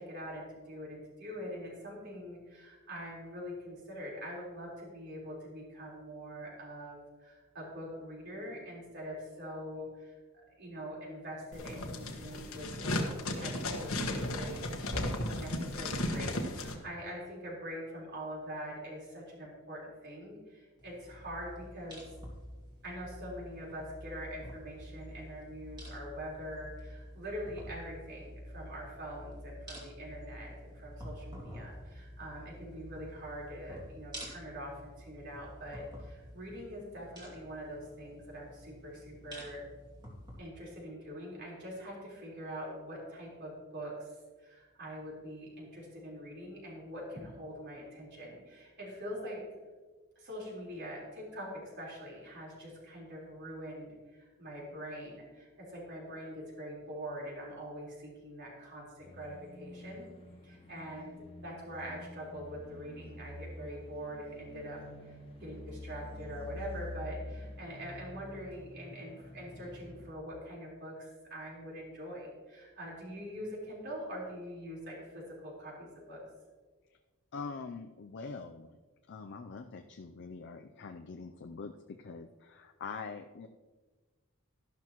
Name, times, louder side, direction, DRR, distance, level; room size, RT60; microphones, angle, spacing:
voice 1, 0.0-10.2 10.6-14.6 15.2-22.1 22.8-39.6 40.4-49.4 50.2-60.1 60.4-76.2, equal, 50° right, -4 dB, 4.2 m, -44 dB
sound 1, 11.5-16.7, left 1 dB, 70° left, 1.4 m, -35 dB
sound 2, 20.8-40.4, equal, 20° right, 2.5 m, -49 dB
sound 3, 59.0-70.1, left 1 dB, 25° left, 1.2 m, -47 dB
voice 2, 77.3-78.8 79.1-83.5, left 4 dB, 55° left, 5 dB, 0.5 m, -44 dB
13.0 x 11.5 x 3.0 m, 1.3 s
head